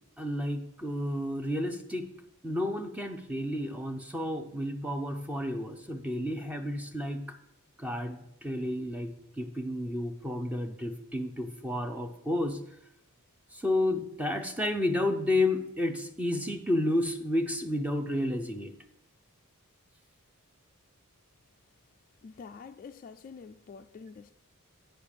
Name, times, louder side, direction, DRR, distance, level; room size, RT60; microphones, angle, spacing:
voice 1, 0.2-2.1 2.4-7.2 7.8-12.6 13.5-18.7, left 1 dB, 5° right, 0.6 m, -31 dB
voice 2, 22.2-24.3, left 5 dB, 40° left, 0.3 m, -47 dB
8.8 x 5.1 x 6.6 m
head